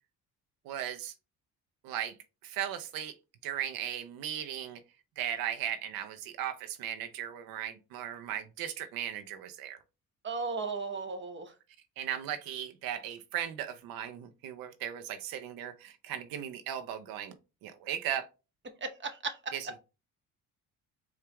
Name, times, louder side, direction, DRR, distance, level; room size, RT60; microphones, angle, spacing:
voice 1, 0.6-1.1 1.8-2.2 2.4-3.1 3.4-4.8 5.2-9.8 12.0-17.3 17.6-18.3 19.5-19.8, right 10 dB, 80° right, 8 dB, 0.7 m, -37 dB
voice 2, 10.2-11.5 18.8-19.5, right 4 dB, 35° right, 6 dB, 1.1 m, -35 dB
4.5 x 2.4 x 3.4 m, 0.29 s
cardioid pair, 80°, 34 cm